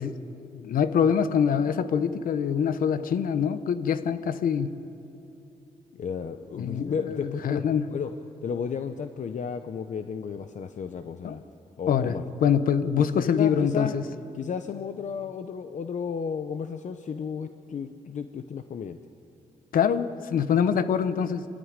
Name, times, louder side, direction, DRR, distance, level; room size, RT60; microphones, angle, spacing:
voice 1, 0.0-4.8 6.6-7.9 11.2-11.3 11.9-14.0 19.7-21.5, left 7 dB, 80° left, 12 dB, 1.1 m, -25 dB
voice 2, 5.9-7.6 7.9-8.1 8.4-11.4 11.8-12.2 13.0-13.9 14.3-19.0, left 6 dB, 60° left, 8 dB, 0.8 m, -33 dB
25.0 x 14.5 x 9.8 m, 2.8 s
cardioid pair, 85°, 14 cm